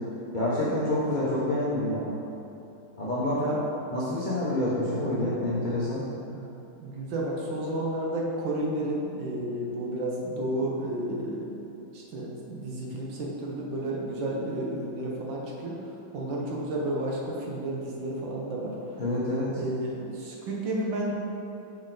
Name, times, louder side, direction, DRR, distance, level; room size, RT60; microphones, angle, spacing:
voice 1, 0.3-2.1 3.0-3.4 3.9-6.0 19.0-19.6, left 1 dB, 75° left, -9 dB, 0.4 m, -27 dB
voice 2, 6.8-11.7 11.9-15.8 16.1-18.7 19.6-21.1, right 1 dB, 65° right, -2 dB, 1.4 m, -32 dB
6.2 x 4.5 x 3.8 m, 2.8 s
omnidirectional pair, 2.4 m